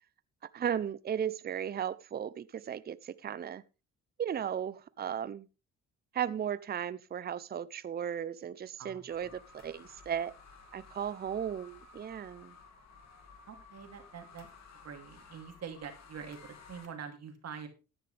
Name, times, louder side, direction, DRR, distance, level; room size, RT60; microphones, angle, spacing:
voice 1, 0.5-3.6 4.2-5.5 6.1-10.3 10.7-12.5, right 9 dB, 30° right, 0.6 m, -36 dB
sound 1, 9.1-16.9, left 4 dB, 60° left, 2.4 m, -55 dB
voice 2, 13.5-14.5 14.8-17.7, right 7 dB, 55° right, 2.8 m, -45 dB
13.5 x 9.8 x 3.3 m
cardioid pair, 90°, 30 cm